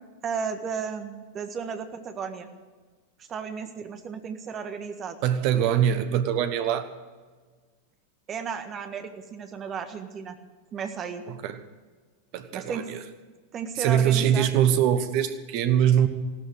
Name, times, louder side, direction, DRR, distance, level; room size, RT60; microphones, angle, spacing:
voice 1, 0.2-2.5 3.3-5.2 8.3-10.4 10.7-11.2 12.5-12.9 13.5-14.5, right 6 dB, 25° right, 7 dB, 1.6 m, -34 dB
voice 2, 5.2-6.9 11.3-11.5 12.3-13.0 13.8-16.1, right 9 dB, 45° right, 10 dB, 1.3 m, -23 dB
16.0 x 13.0 x 6.3 m, 1.4 s
figure-of-eight pair, 90°, 0 cm